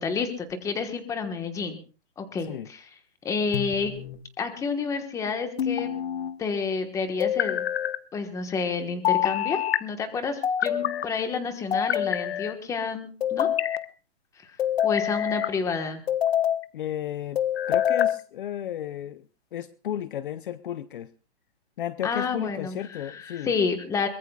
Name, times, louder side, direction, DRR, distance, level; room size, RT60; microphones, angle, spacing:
voice 1, 0.0-1.8 2.2-2.8 3.2-3.9 4.4-5.9 6.4-7.7 8.1-13.5 14.4-14.5 14.8-16.0 22.0-24.1, left 5 dB, 10° left, 7 dB, 1.3 m, -29 dB
sound 1, 3.5-4.2 5.6-6.3 7.2-8.0 9.0-9.8 10.4-11.1 11.7-12.6 13.2-13.8 14.6-15.5 16.1-16.6 17.4-18.2, left 10 dB, 65° left, 1.1 m, -25 dB
voice 2, 16.7-17.4 17.7-19.3 19.5-21.1 21.8-23.5, left 10 dB, 50° left, 15 dB, 0.7 m, -33 dB
23.0 x 21.0 x 2.4 m, 0.37 s
hypercardioid pair, 160°, 34 cm